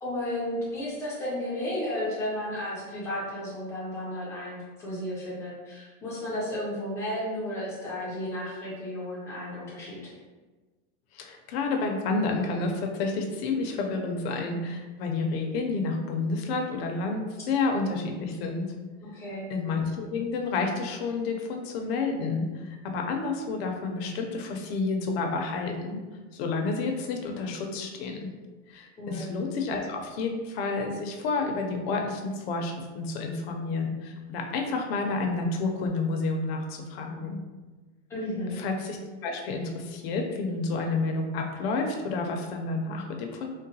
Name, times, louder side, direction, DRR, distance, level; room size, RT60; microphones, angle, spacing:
voice 1, 0.0-10.1 19.0-19.5 29.0-29.3 38.1-38.6, left 1 dB, 10° left, -8 dB, 0.4 m, -33 dB
voice 2, 11.1-18.7 19.5-26.0 26.3-28.2 28.7-37.4 38.5-39.0 39.2-43.5, left 3 dB, 55° left, 3 dB, 0.5 m, -30 dB
3.8 x 2.1 x 2.7 m, 1.3 s
supercardioid pair, 165°, 37 cm